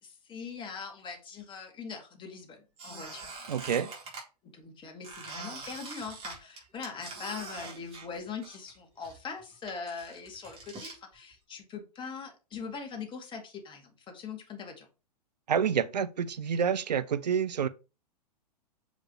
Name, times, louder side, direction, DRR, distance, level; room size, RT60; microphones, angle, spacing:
voice 1, 0.0-3.4 4.4-14.9, left 5 dB, 25° left, 2.3 m, -42 dB
Squeak, 2.8-4.2 5.0-8.8 9.0-11.0, right 3 dB, 30° right, 4.0 m, -44 dB
voice 2, 3.5-3.9 15.5-17.7, right 7 dB, 80° right, 0.5 m, -28 dB
7.4 x 5.1 x 3.2 m
hypercardioid pair, 105°, 21 cm